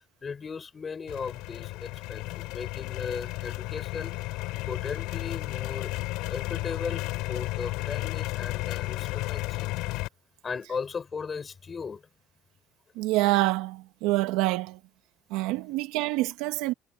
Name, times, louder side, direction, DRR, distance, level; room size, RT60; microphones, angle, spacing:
voice 1, 0.2-4.1 4.7-5.9 6.3-9.7 10.4-12.0, left 5 dB, 25° left, 5.6 m, -37 dB
sound 1, 1.1-10.1, left 21 dB, 80° left, 5.8 m, -33 dB
voice 2, 13.0-14.8 15.3-16.7, right 18 dB, 85° right, 2.2 m, -26 dB
cardioid pair, 140°, 0 cm